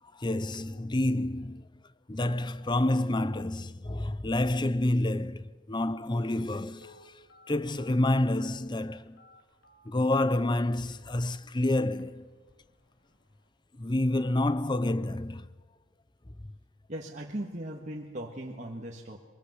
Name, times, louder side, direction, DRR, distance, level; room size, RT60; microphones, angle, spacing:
voice 1, 0.1-1.6 2.1-7.1 7.5-9.2 9.9-12.3 13.7-15.5, left 1 dB, 20° left, 0.7 m, -28 dB
Telephone, 5.3-5.4 6.1-10.9 11.5-11.6 11.9-12.1 12.5-12.8 13.1-13.2, left 3 dB, 55° left, 3.5 m, -55 dB
voice 2, 16.9-19.2, right 1 dB, 35° right, 1.7 m, -38 dB
23.0 x 22.0 x 8.0 m
head